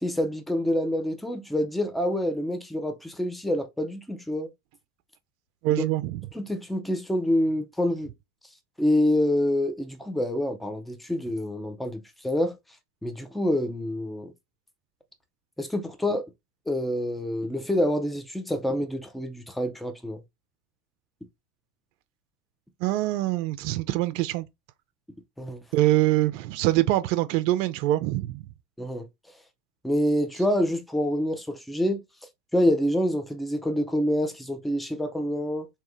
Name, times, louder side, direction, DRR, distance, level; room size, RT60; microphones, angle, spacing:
voice 1, 0.0-4.5 5.7-5.8 6.3-8.1 8.8-12.5 13.0-14.3 15.6-16.3 16.7-20.2 25.4-25.6 28.8-29.0 29.8-32.0 32.5-35.7, left 1 dB, ahead, 0.3 m, -27 dB
voice 2, 5.6-6.2 22.8-24.4 25.7-28.4, right 16 dB, 55° right, 0.5 m, -24 dB
3.6 x 2.9 x 3.3 m
hypercardioid pair, 85°, 47 cm